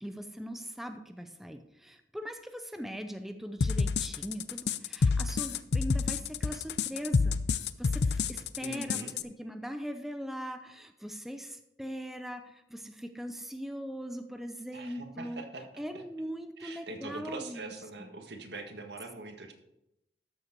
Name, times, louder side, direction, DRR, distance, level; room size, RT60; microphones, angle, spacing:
voice 1, 0.0-1.6 2.1-2.4 2.7-7.4 8.6-11.5 11.8-12.4 13.2-15.4 15.8-17.7 18.0-18.1, equal, ahead, 7 dB, 0.6 m, -40 dB
sound 1, 3.6-9.2, left 4 dB, 70° left, 0.5 m, -28 dB
voice 2, 8.6-9.1 14.7-15.8 16.6-19.5, right 2 dB, 75° right, 4 dB, 1.6 m, -42 dB
13.0 x 6.7 x 4.6 m, 0.85 s
head